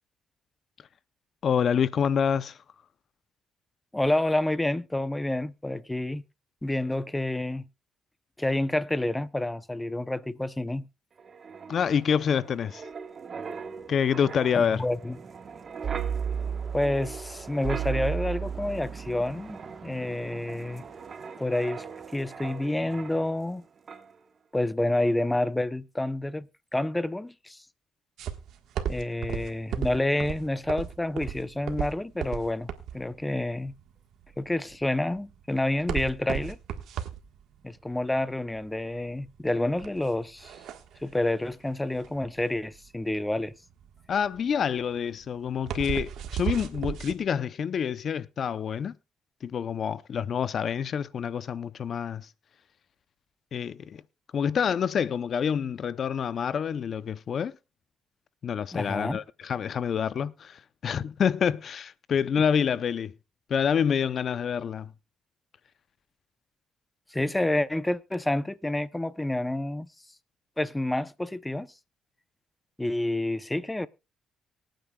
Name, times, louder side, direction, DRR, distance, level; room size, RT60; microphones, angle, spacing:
voice 1, 1.4-2.6 11.7-12.8 13.9-14.8 44.1-49.0 49.4-52.3 53.5-54.0 54.3-57.5 58.4-63.1 63.5-64.9, left 7 dB, 55° left, 0.6 m, -27 dB
voice 2, 3.9-6.2 6.6-7.6 8.4-10.9 14.5-15.2 16.7-20.8 21.4-21.9 22.1-23.6 24.5-27.6 28.9-33.7 34.4-36.6 37.6-40.6 41.0-43.5 58.7-59.2 67.1-69.9 70.6-71.7 72.8-73.9, left 1 dB, 10° left, 0.7 m, -29 dB
Wind, 11.2-23.6 23.9-24.1, right 7 dB, 45° right, 1.2 m, -36 dB
sound 1, 28.2-47.1, right 9 dB, 80° right, 1.4 m, -35 dB
24.0 x 9.0 x 2.3 m
cardioid pair, 90°, 0 cm